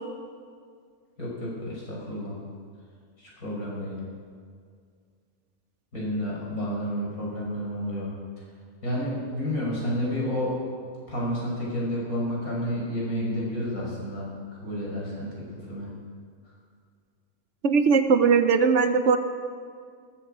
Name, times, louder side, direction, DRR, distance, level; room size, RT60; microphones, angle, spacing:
voice 1, 1.2-2.4 3.2-4.0 5.9-8.1 8.8-10.5 11.1-15.3 15.7-15.9, equal, 70° left, -4 dB, 5.6 m, -30 dB
voice 2, 17.6-19.2, right 5 dB, 55° right, 8 dB, 1.0 m, -20 dB
19.0 x 14.0 x 5.0 m, 2.1 s
omnidirectional pair, 1.6 m